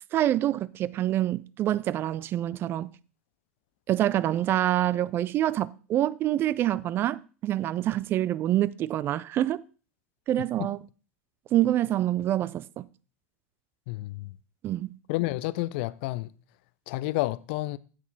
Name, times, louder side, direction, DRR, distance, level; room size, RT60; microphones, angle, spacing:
voice 1, 0.1-2.9 3.9-9.6 10.3-10.8 11.5-12.8 14.6-14.9, right 13 dB, 30° right, 0.4 m, -26 dB
voice 2, 13.9-14.4 15.1-16.3 16.9-17.8, left 19 dB, 50° left, 0.4 m, -30 dB
9.3 x 7.9 x 4.0 m
figure-of-eight pair, 80°, 7 cm